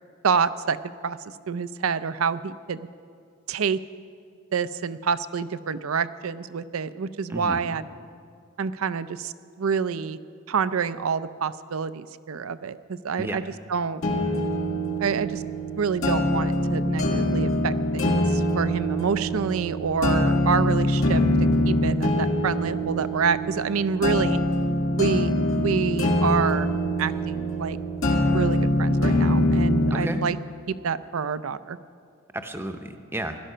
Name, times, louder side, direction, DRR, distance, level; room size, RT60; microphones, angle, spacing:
voice 1, 0.2-0.8 1.0-1.2 1.5-2.9 3.5-3.8 4.5-7.8 8.6-10.2 10.5-13.4 13.7-14.0 15.0-15.4 15.7-24.4 25.0-25.3 25.6-26.7 27.0-27.8 28.2-30.4 30.7-31.8, right 6 dB, 85° right, 14 dB, 0.5 m, -27 dB
voice 2, 7.3-7.6 13.2-13.4 29.9-30.3 32.3-33.4, right 1 dB, 10° right, 7 dB, 0.7 m, -32 dB
sound 1, 14.0-30.0, left 1 dB, 75° left, 2.0 m, -24 dB
17.5 x 12.0 x 5.6 m, 2.2 s
head